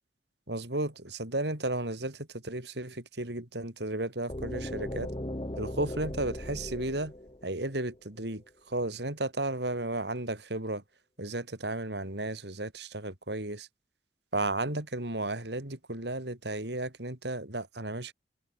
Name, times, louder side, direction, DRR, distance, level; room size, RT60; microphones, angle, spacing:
voice 1, 0.5-5.1 5.5-7.1 7.4-10.8 11.2-13.7 14.3-18.1, right 2 dB, 65° right, 4.0 m, -34 dB
sound 1, 4.3-8.2, left 1 dB, 30° left, 2.6 m, -38 dB
head